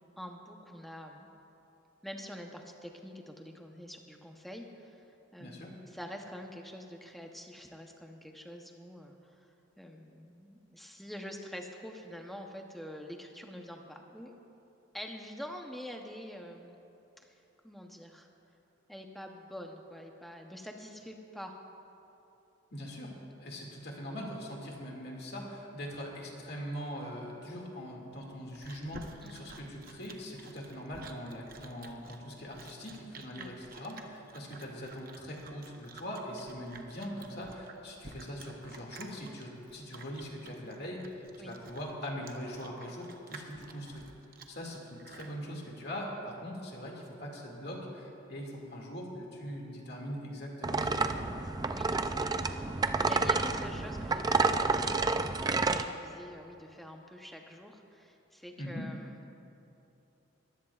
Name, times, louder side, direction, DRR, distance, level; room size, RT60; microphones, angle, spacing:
voice 1, 0.0-1.3 2.0-14.3 14.9-16.8 17.2-18.3 18.9-21.6 29.2-29.4 33.4-33.5 41.4-41.6 51.7-52.7 53.0-55.3 55.6-59.4, equal, ahead, 2 dB, 0.8 m, -46 dB
voice 2, 5.4-5.7 22.7-23.1 23.4-44.0 44.5-51.3 58.6-58.9, equal, 50° left, -1 dB, 2.2 m, -42 dB
Chewing mastication, 28.1-45.4, right 4 dB, 40° right, 0.8 m, -51 dB
sound 1, 50.6-55.8, right 3 dB, 20° right, 0.3 m, -29 dB
21.5 x 15.5 x 2.4 m, 2.9 s
head